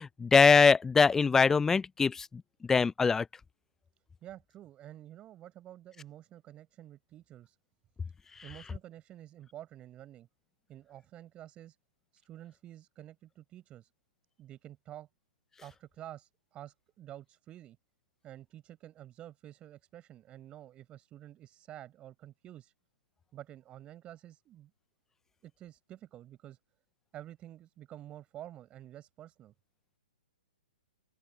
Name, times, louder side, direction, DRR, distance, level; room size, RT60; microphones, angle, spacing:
voice 1, 0.0-3.3, left 5 dB, 10° left, 0.5 m, -23 dB
voice 2, 4.2-7.6 8.4-10.3 10.7-11.8 12.1-13.9 14.4-15.1 15.6-17.8 18.2-22.7 23.3-24.7 25.4-26.6 27.1-29.5, right 12 dB, 20° right, 5.0 m, -49 dB
open air
hypercardioid pair, 135°, 5 cm